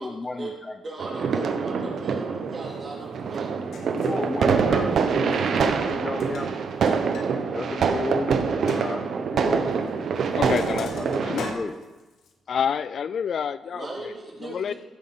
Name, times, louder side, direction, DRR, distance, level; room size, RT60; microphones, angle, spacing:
voice 1, 0.0-0.8 3.8-6.5 7.4-9.7 10.9-11.7, left 2 dB, 20° left, 7 dB, 0.7 m, -33 dB
voice 2, 0.8-3.6 13.7-14.7, right 2 dB, 30° right, -3 dB, 3.4 m, -38 dB
sound 1, 1.0-11.5, right 5 dB, 60° right, 1.0 m, -25 dB
Sink (filling or washing), 3.3-3.4 3.7-4.3 5.2-5.6 5.9-7.3 7.6-7.7 8.1-8.2 8.7-8.8 9.7-9.9 10.2-12.3, left 5 dB, 70° left, 1.6 m, -41 dB
voice 3, 10.4-10.9 11.2-11.5 12.5-14.1 14.4-14.7, left 7 dB, 55° left, 16 dB, 0.3 m, -28 dB
15.5 x 6.3 x 5.8 m, 1.1 s
cardioid pair, 120°, 0 cm